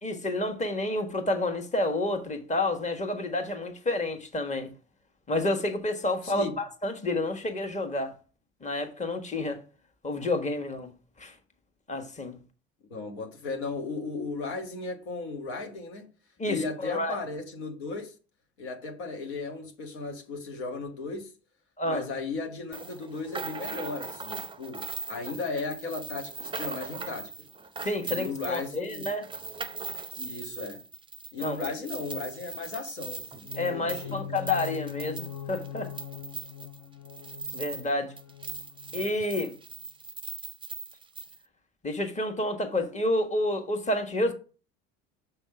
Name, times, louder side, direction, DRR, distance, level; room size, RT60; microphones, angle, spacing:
voice 1, 0.0-4.7 5.3-8.1 8.6-9.6 10.0-10.9 11.2-11.3 11.9-12.4 16.4-17.1 21.8-22.0 27.8-29.2 31.4-31.7 33.6-35.9 37.5-38.1 38.9-39.5 41.8-44.3, left 2 dB, 20° left, 1.4 m, -29 dB
voice 2, 6.2-6.5 12.9-16.1 16.4-18.1 18.6-21.3 21.8-27.3 28.1-29.1 30.2-30.8 31.3-33.5 33.7-34.4, left 3 dB, 90° left, 1.6 m, -36 dB
sound 1, 22.7-37.9 38.2-41.4, right 5 dB, 15° right, 0.6 m, -40 dB
sound 2, 33.3-39.3, left 9 dB, 55° left, 0.7 m, -42 dB
6.6 x 3.5 x 5.8 m
hypercardioid pair, 75°, 32 cm